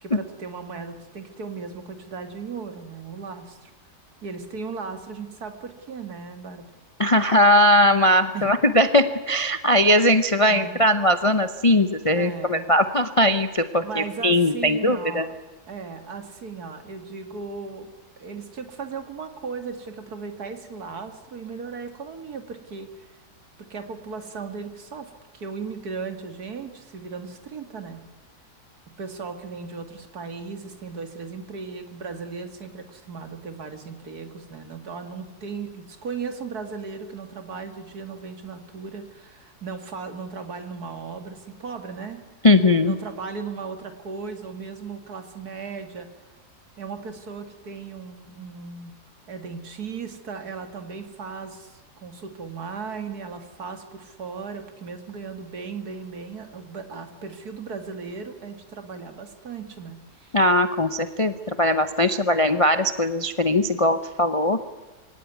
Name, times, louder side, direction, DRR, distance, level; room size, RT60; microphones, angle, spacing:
voice 1, 0.0-3.7 4.2-6.7 8.3-8.5 10.5-10.8 12.1-12.7 13.8-15.3 15.7-23.1 23.6-28.0 29.0-42.2 42.8-46.1 46.8-48.9 49.3-60.4, right 5 dB, 65° right, 8 dB, 2.5 m, -36 dB
voice 2, 7.0-15.2 42.4-42.9 60.3-64.6, left 1 dB, 30° left, 10 dB, 0.6 m, -20 dB
24.0 x 17.0 x 9.4 m, 1.2 s
omnidirectional pair, 1.8 m